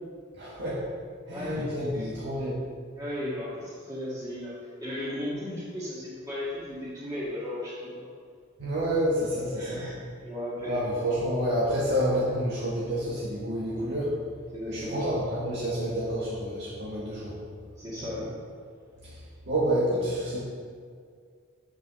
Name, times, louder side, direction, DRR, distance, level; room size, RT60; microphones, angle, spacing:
voice 1, 0.4-0.8 1.3-2.6 8.6-9.8 10.6-14.2 14.7-17.4 19.0-19.2 19.4-20.4, equal, 65° right, -7 dB, 1.9 m, -29 dB
voice 2, 1.3-2.1 3.0-8.0 9.6-10.8 14.5-15.2 17.8-18.4, left 1 dB, 20° right, -11 dB, 2.1 m, -35 dB
8.0 x 7.4 x 6.1 m, 2.1 s
head